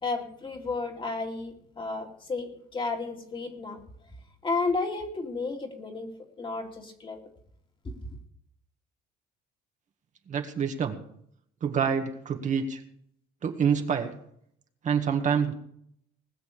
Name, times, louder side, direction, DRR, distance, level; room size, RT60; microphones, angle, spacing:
voice 1, 0.0-3.8 4.4-7.2 7.8-7.9, left 3 dB, 30° left, 3 dB, 2.6 m, -32 dB
voice 2, 10.3-11.0 11.6-12.8 13.4-14.1 14.8-15.5, right 7 dB, 45° right, 4 dB, 1.8 m, -27 dB
20.0 x 6.8 x 6.9 m, 0.69 s
cardioid pair, 110°, 17 cm